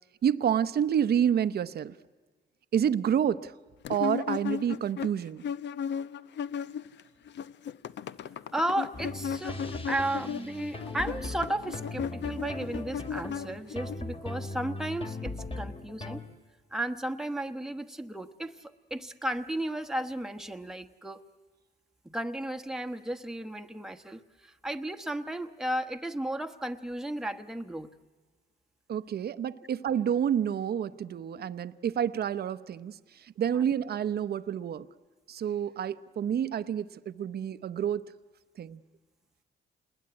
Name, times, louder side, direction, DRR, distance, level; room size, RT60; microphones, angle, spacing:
voice 1, 0.2-1.9 2.7-3.5 3.9-5.4 28.9-34.9 35.3-38.0 38.6-38.8, right 9 dB, 55° right, 0.8 m, -29 dB
sound 1, 3.9-7.0 7.3-14.0, left 7 dB, 65° left, 0.8 m, -36 dB
voice 2, 8.5-9.6 9.9-16.2 16.7-21.2 22.0-27.9 33.5-33.6, right 1 dB, ahead, 1.1 m, -34 dB
sound 2, 8.9-16.2, left 2 dB, 30° left, 2.2 m, -39 dB
28.0 x 20.5 x 9.7 m
cardioid pair, 90°, 20 cm